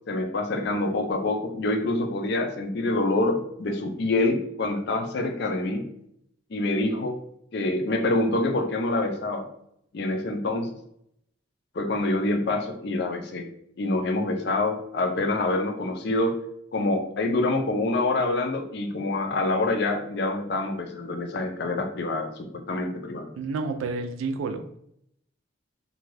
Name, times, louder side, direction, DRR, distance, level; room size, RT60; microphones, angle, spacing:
voice 1, 0.1-5.9 6.5-7.2 7.5-9.5 9.9-10.7 11.7-13.5 13.8-16.4 16.7-23.3, left 2 dB, 55° left, 6 dB, 0.4 m, -26 dB
voice 2, 23.4-24.8, right 4 dB, 80° right, 9 dB, 0.3 m, -30 dB
2.6 x 2.3 x 3.1 m, 0.73 s
head